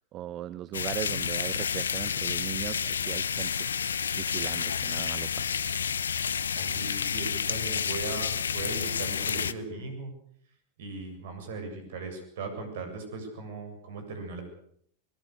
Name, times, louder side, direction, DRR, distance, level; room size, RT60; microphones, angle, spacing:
voice 1, 0.1-3.7 4.2-5.6, right 12 dB, 35° right, 16 dB, 0.9 m, -38 dB
sound 1, 0.7-9.5, left 7 dB, 70° left, 0.9 m, -30 dB
voice 2, 6.5-10.1 10.8-14.4, right 3 dB, 55° right, 6 dB, 7.5 m, -38 dB
24.0 x 22.0 x 6.7 m, 0.65 s
figure-of-eight pair, 90°, 0 cm